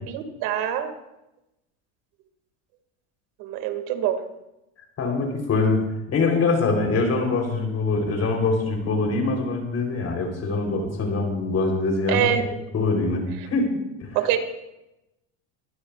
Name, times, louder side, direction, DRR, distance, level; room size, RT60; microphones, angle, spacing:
voice 1, 0.1-0.9 3.4-4.2 12.1-12.4 14.1-14.4, right 11 dB, 65° right, 7 dB, 2.2 m, -24 dB
voice 2, 5.0-5.8 6.1-12.3 12.7-14.1, left 3 dB, 40° left, 2 dB, 3.6 m, -24 dB
23.5 x 15.5 x 2.4 m, 0.92 s
supercardioid pair, 100°, 39 cm